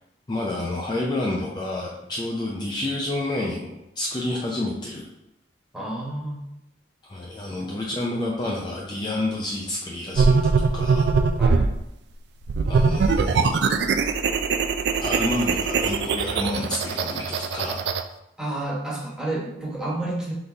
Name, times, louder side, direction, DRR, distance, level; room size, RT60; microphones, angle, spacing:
voice 1, 0.3-5.1 7.0-11.1 12.7-13.6 15.0-17.8, left 1 dB, 25° left, -3 dB, 0.5 m, -29 dB
voice 2, 5.7-6.4 11.4-11.7 18.4-20.3, right 1 dB, 5° right, -6 dB, 1.2 m, -30 dB
sound 1, 10.2-11.8 12.5-18.0, right 4 dB, 65° right, 0.3 m, -22 dB
4.0 x 3.9 x 3.4 m, 0.86 s
head